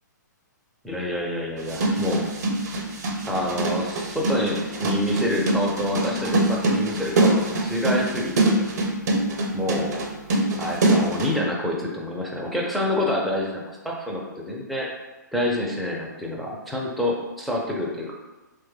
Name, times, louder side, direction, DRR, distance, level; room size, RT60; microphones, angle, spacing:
voice 1, 0.8-2.3 3.3-8.6 9.5-10.1 10.6-14.9 15.3-18.1, left 1 dB, ahead, -3 dB, 0.4 m, -27 dB
sound 1, 1.6-11.3, right 2 dB, 55° right, 0.6 m, -24 dB
3.1 x 2.2 x 3.2 m, 1.2 s
hypercardioid pair, 130°, 10 cm